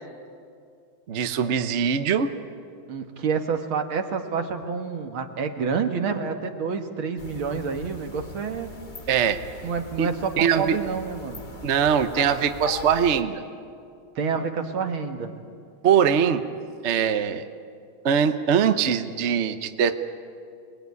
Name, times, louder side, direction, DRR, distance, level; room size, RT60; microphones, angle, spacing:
voice 1, 1.1-2.3 9.1-9.4 10.0-10.1 10.4-10.8 11.6-13.4 15.8-16.4 16.8-17.5 18.0-19.9, right 7 dB, 50° right, 9 dB, 0.9 m, -22 dB
voice 2, 2.9-8.7 9.6-11.4 14.2-15.3, right 5 dB, 70° right, 5 dB, 2.4 m, -28 dB
sound 1, 7.2-13.2, left 4 dB, 25° left, 1.3 m, -40 dB
26.5 x 20.5 x 9.6 m, 2.4 s
omnidirectional pair, 2.4 m